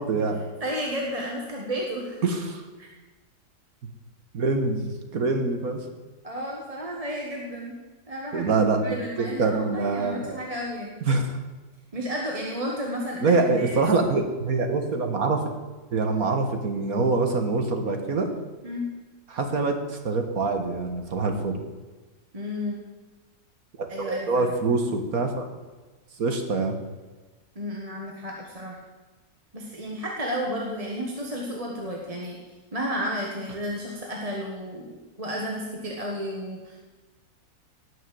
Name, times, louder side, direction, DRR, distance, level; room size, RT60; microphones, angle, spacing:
voice 1, 0.0-0.4 2.2-2.6 4.3-5.9 8.3-10.4 11.1-11.4 13.2-15.5 15.9-18.3 19.3-21.6 23.8-25.4 26.2-26.7, right 3 dB, 65° right, 5 dB, 1.9 m, -25 dB
voice 2, 0.6-2.2 2.8-2.9 6.2-7.8 8.1-8.6 8.8-10.9 11.9-14.2 18.6-18.9 22.3-22.8 23.9-24.5 27.6-28.8 29.5-32.4 32.7-34.9 35.2-36.8, equal, 25° right, -1 dB, 1.7 m, -32 dB
18.0 x 6.5 x 7.7 m, 1.3 s
omnidirectional pair, 1.7 m